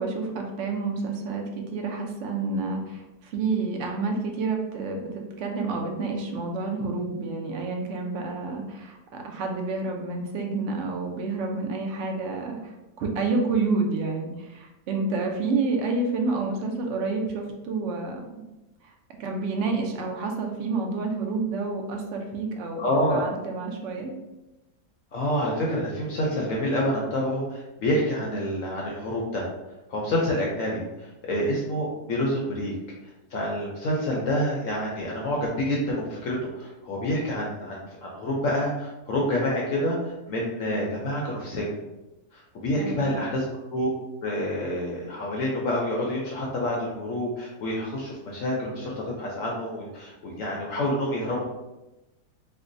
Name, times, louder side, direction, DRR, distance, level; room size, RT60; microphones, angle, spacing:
voice 1, 0.0-1.4 1.7-12.7 13.0-18.4 19.2-24.1 42.8-43.2, right 3 dB, 75° right, 2 dB, 0.6 m, -29 dB
voice 2, 22.8-23.3 25.1-29.5 29.9-32.7 33.3-41.7 42.3-43.9 44.2-51.4, left 1 dB, 65° left, -3 dB, 0.8 m, -28 dB
4.5 x 2.1 x 2.5 m, 1.0 s
omnidirectional pair, 1.8 m